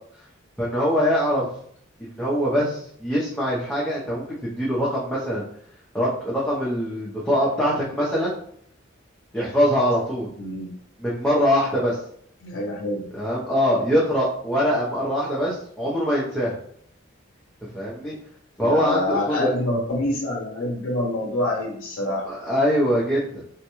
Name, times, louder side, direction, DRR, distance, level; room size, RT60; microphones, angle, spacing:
voice 1, 0.6-1.5 2.0-5.4 5.9-8.3 9.3-10.3 11.0-12.0 13.1-16.5 17.7-18.1 18.6-19.5 22.3-23.4, equal, 5° left, -8 dB, 0.5 m, -23 dB
voice 2, 10.4-10.7 12.4-13.1 18.6-22.2, left 1 dB, 75° left, 0 dB, 0.5 m, -26 dB
3.5 x 2.1 x 2.9 m, 0.63 s
head